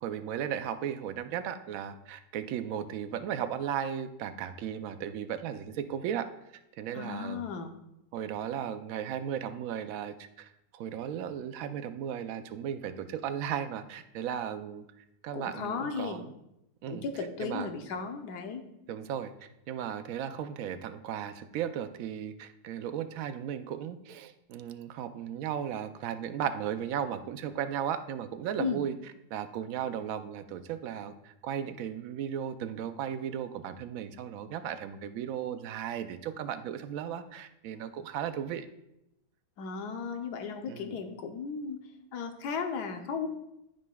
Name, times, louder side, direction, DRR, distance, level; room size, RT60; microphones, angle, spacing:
voice 1, 0.0-6.3 6.8-7.5 8.1-14.8 15.2-16.2 16.8-17.0 17.4-17.7 18.9-28.9 29.3-38.7 40.7-40.9, right 9 dB, 70° right, 10 dB, 0.8 m, -36 dB
voice 2, 6.9-7.7 15.3-16.2 16.9-18.6 28.6-28.8 39.6-41.8 42.1-43.3, left 5 dB, 75° left, 5 dB, 1.4 m, -35 dB
13.0 x 5.2 x 2.3 m, 0.85 s
omnidirectional pair, 1.8 m